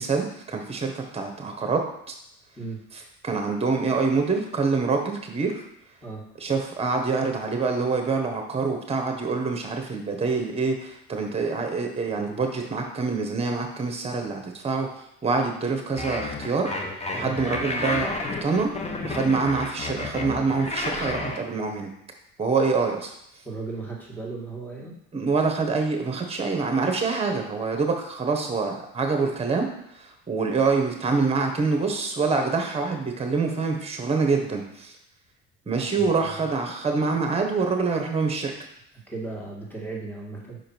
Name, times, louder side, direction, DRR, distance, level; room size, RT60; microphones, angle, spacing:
voice 1, 0.0-1.8 2.1-2.2 3.2-5.6 6.4-16.7 17.1-18.1 18.4-18.7 19.0-21.9 22.4-23.1 25.1-29.7 30.0-34.9 35.7-38.5, right 4 dB, 20° right, 4 dB, 1.4 m, -25 dB
sound 1, 16.0-21.4, left 2 dB, 20° left, 0.9 m, -31 dB
voice 2, 23.4-24.9 35.7-36.4 39.1-40.6, right 3 dB, 5° left, -4 dB, 2.2 m, -36 dB
5.3 x 5.0 x 4.6 m, 0.75 s
supercardioid pair, 100°, 30 cm